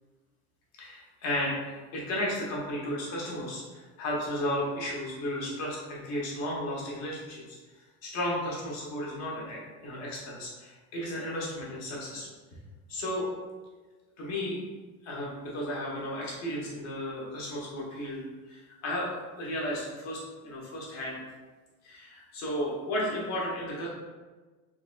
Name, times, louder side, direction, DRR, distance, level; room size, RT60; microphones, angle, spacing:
voice 1, 0.8-7.6 8.0-12.3 12.9-13.3 14.2-14.6 15.0-18.2 18.5-19.1 19.4-21.2 21.8-23.9, left 1 dB, 40° left, -4 dB, 0.9 m, -34 dB
3.8 x 3.0 x 2.2 m, 1.3 s
cardioid pair, 175°, 42 cm